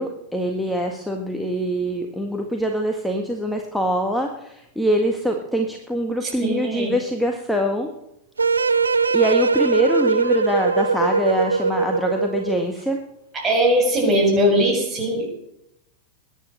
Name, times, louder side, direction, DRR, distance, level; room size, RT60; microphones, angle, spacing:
voice 1, 0.0-7.9 9.1-13.0, equal, ahead, 3 dB, 1.7 m, -24 dB
voice 2, 6.2-6.9 13.3-15.3, equal, 25° right, 1 dB, 7.3 m, -20 dB
sound 1, 8.4-12.7, right 4 dB, 75° right, 0.6 m, -21 dB
21.5 x 10.0 x 6.5 m, 0.82 s
figure-of-eight pair, 90°, 0 cm